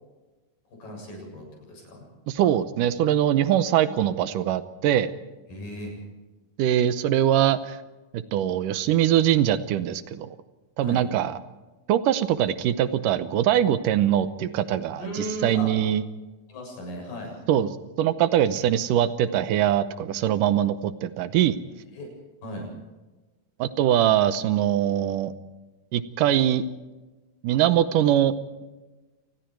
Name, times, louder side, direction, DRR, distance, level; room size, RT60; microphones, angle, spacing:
voice 1, 0.8-2.0 5.5-5.9 10.8-11.0 15.0-15.7 16.5-17.4 21.9-22.1 22.4-22.7, equal, 85° left, 1 dB, 9.1 m, -36 dB
voice 2, 2.3-5.1 6.6-7.8 8.1-10.3 10.8-11.4 11.9-16.0 17.5-17.7 18.0-21.6 23.6-25.3 25.9-26.6 27.4-28.3, right 11 dB, 80° right, 13 dB, 2.5 m, -22 dB
28.0 x 20.5 x 4.7 m, 1.2 s
omnidirectional pair, 3.9 m